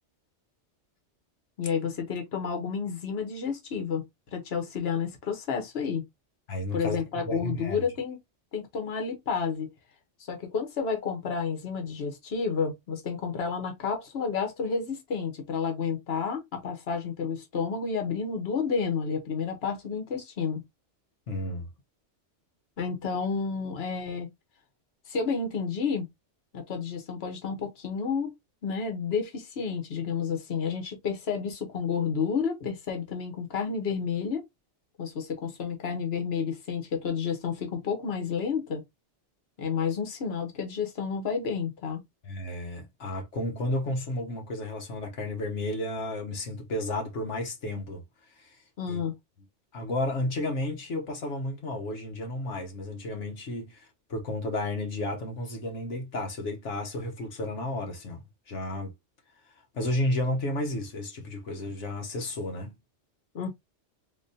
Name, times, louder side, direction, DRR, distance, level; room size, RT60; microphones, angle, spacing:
voice 1, 1.6-4.0 4.3-6.0 6.7-8.2 8.5-9.7 10.3-20.6 22.8-24.3 25.1-26.1 26.5-28.3 28.6-34.5 35.0-38.8 39.6-42.0 48.8-49.1 63.3-63.5, left 6 dB, 60° left, 1.3 m, -30 dB
voice 2, 6.5-7.8 21.3-21.7 42.2-48.0 48.4-48.6 48.9-49.0 49.7-58.2 58.5-58.9 59.7-62.7, left 1 dB, 85° left, 1.4 m, -32 dB
3.9 x 2.9 x 2.7 m
omnidirectional pair, 1.2 m